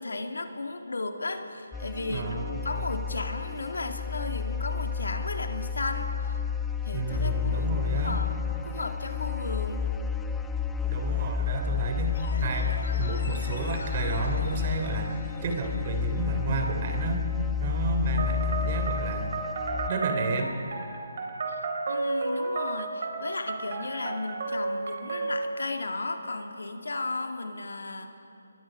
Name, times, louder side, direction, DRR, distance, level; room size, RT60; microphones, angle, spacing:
voice 1, 0.0-6.4 6.8-9.9 21.5-21.6 21.9-28.1, left 2 dB, 85° left, 4 dB, 2.3 m, -35 dB
sound 1, 1.7-19.9, left 7 dB, 5° left, 0.6 m, -31 dB
voice 2, 2.1-2.6 6.9-8.2 10.9-12.1 12.4-15.1 15.4-17.2 17.6-19.3 19.9-20.5, right 3 dB, 35° right, 3 dB, 3.1 m, -31 dB
sound 2, 12.1-16.4 16.7-16.8, left 3 dB, 55° left, 4.1 m, -44 dB
sound 3, 18.2-25.6, right 3 dB, 50° right, 4.2 m, -32 dB
29.5 x 22.5 x 5.2 m, 2.7 s
figure-of-eight pair, 160°, 0 cm